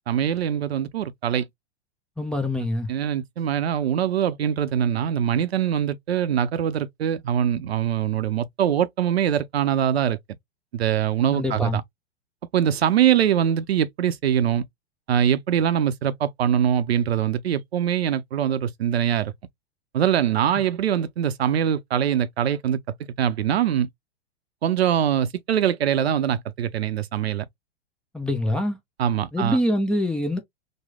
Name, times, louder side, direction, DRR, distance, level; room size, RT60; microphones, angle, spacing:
voice 1, 0.1-1.5 2.9-10.2 10.7-11.8 12.5-14.6 15.1-19.3 19.9-22.8 23.2-23.9 24.6-27.4 29.0-29.6, right 9 dB, 70° right, 0.6 m, -23 dB
voice 2, 2.2-2.9 11.3-11.8 28.1-28.8 29.3-30.4, left 1 dB, 5° left, 0.5 m, -24 dB
3.1 x 2.1 x 3.5 m
figure-of-eight pair, 105°, 33 cm